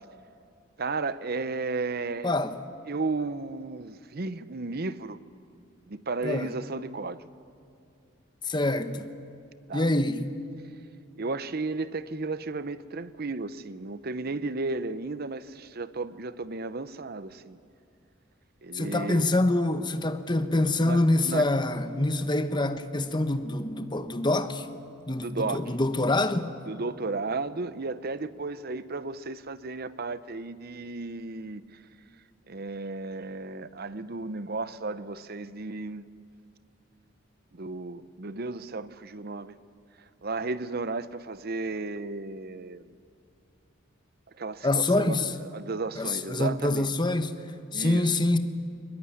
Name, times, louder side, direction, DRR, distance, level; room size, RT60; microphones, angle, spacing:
voice 1, 0.8-2.3 2.9-5.2 5.9-7.3 9.7-9.9 11.2-17.6 18.6-19.3 20.8-21.5 25.2-25.7 26.7-31.8 32.5-36.1 37.5-39.6 40.2-42.9 44.4-46.9 47.7-48.2, right 3 dB, 45° right, 0.8 m, -34 dB
voice 2, 2.2-2.6 6.2-6.5 8.4-9.1 9.7-10.3 18.7-24.7 25.1-26.5 44.6-45.3 46.0-47.3 47.7-48.4, left 2 dB, 20° left, 1.0 m, -25 dB
22.5 x 20.0 x 10.0 m
head